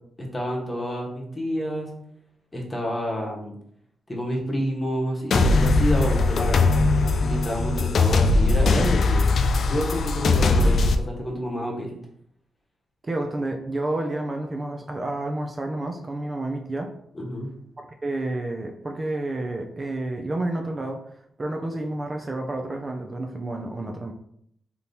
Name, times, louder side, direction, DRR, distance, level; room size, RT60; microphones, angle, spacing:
voice 1, 0.2-1.9 2.5-3.6 4.1-6.6 7.2-9.3 9.7-11.9 17.1-17.5, equal, 25° left, -2 dB, 1.1 m, -29 dB
sound 1, 5.3-10.9, left 3 dB, 65° left, 0.3 m, -20 dB
voice 2, 13.0-16.9 17.8-21.0 21.4-24.1, right 2 dB, 30° right, 3 dB, 0.4 m, -30 dB
3.6 x 2.9 x 2.7 m, 0.69 s
cardioid pair, 70°, 0 cm